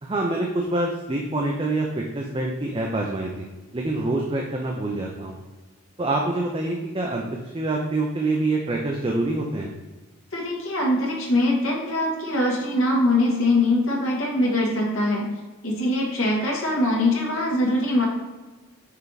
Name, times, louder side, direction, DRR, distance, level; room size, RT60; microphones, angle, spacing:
voice 1, 0.0-3.5 3.7-5.4 6.0-9.7, right 2 dB, 25° right, 0 dB, 0.5 m, -26 dB
voice 2, 10.3-15.3 15.6-18.1, left 1 dB, 65° left, -2 dB, 1.7 m, -22 dB
5.7 x 4.5 x 4.0 m, 1.2 s
head